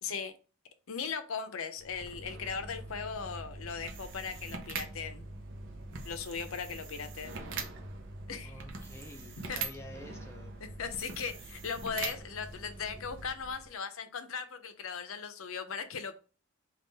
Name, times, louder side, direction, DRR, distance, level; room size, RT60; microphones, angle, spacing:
voice 1, 0.0-0.3 0.9-5.2 6.0-7.3 8.3-8.6 9.5-9.6 10.8-16.2, left 6 dB, 70° left, 9 dB, 0.6 m, -38 dB
sound 1, 1.8-13.7, right 3 dB, 55° right, 0.7 m, -43 dB
voice 2, 8.4-10.6, left 1 dB, 10° left, 2 dB, 0.7 m, -49 dB
3.6 x 2.4 x 3.9 m, 0.34 s
head